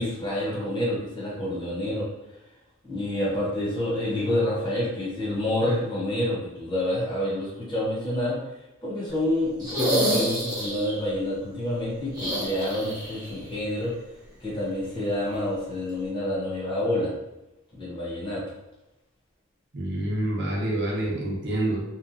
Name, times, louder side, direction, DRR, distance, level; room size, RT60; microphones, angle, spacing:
voice 1, 0.0-2.1 2.8-8.4 8.8-13.9 14.4-17.1 17.7-18.4, left 1 dB, 20° left, -7 dB, 0.9 m, -28 dB
sound 1, 9.6-11.0 12.1-13.3 13.6-13.7 15.3-15.4, equal, 20° right, 0.8 m, -27 dB
voice 2, 19.7-21.8, right 1 dB, 55° right, -3 dB, 0.7 m, -27 dB
2.8 x 2.2 x 2.5 m, 0.92 s
head